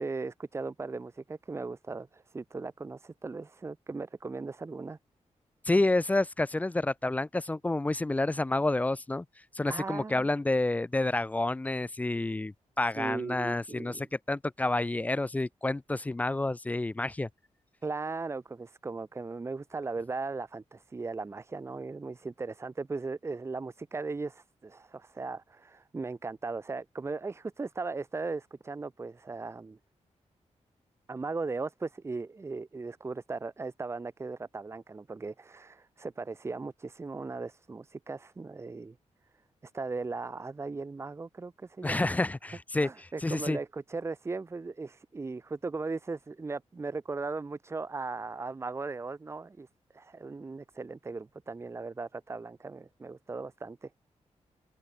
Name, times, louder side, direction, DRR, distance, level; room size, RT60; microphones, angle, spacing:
voice 1, 0.0-5.0 9.7-10.3 13.0-14.1 17.8-29.8 31.1-39.0 39.6-42.2 42.8-49.7 49.9-53.9, right 3 dB, 20° right, 0.6 m, -38 dB
voice 2, 5.7-9.3 9.5-17.3 41.8-42.9 43.2-43.6, left 2 dB, 10° left, 0.3 m, -29 dB
wide cardioid pair, 155°, 12 cm